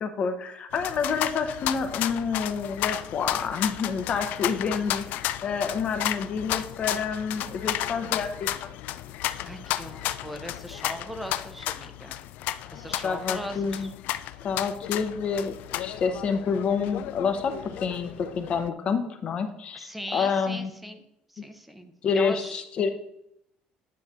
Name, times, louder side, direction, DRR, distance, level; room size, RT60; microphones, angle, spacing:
voice 1, 0.0-8.5 13.0-13.9 14.4-15.6 15.8-17.6 17.8-20.7 22.0-22.9, left 5 dB, 35° left, 8 dB, 0.8 m, -28 dB
sound 1, 0.7-18.7, left 13 dB, 65° left, 0.3 m, -33 dB
voice 2, 9.5-12.2 12.7-13.9 19.7-21.0 21.3-22.6, equal, 5° right, 7 dB, 0.7 m, -39 dB
9.5 x 3.3 x 6.6 m, 0.80 s
cardioid pair, 155°, 3 cm